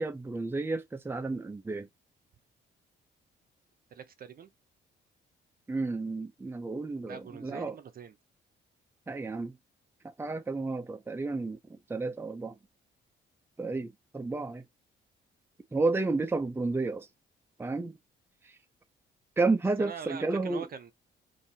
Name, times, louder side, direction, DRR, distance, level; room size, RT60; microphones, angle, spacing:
voice 1, 0.0-1.9 5.7-7.8 9.1-9.6 10.2-12.5 13.6-14.6 15.7-17.1 17.6-18.0 18.4-18.5 19.4-20.6, right 3 dB, 10° right, 0.6 m, -31 dB
voice 2, 3.9-4.5 7.1-8.1 19.8-20.9, right 7 dB, 50° right, 0.7 m, -43 dB
3.9 x 2.8 x 2.8 m
cardioid pair, 90°, 20 cm